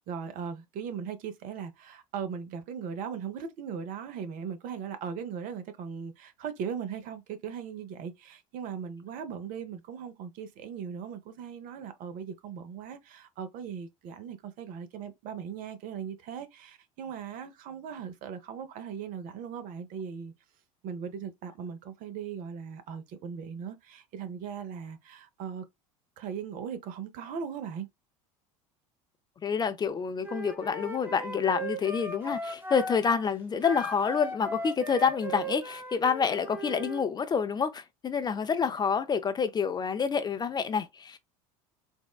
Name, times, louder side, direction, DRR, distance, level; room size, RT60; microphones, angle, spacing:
voice 1, 0.0-20.3 20.8-25.6 26.2-27.9, right 7 dB, 50° right, 0.6 m, -39 dB
voice 2, 29.4-41.2, left 6 dB, 25° left, 0.4 m, -28 dB
Wind instrument woodwind instrument, 30.2-33.2 33.6-37.0, right 1 dB, 10° right, 0.8 m, -37 dB
3.5 x 2.1 x 2.3 m
hypercardioid pair, 80°, 18 cm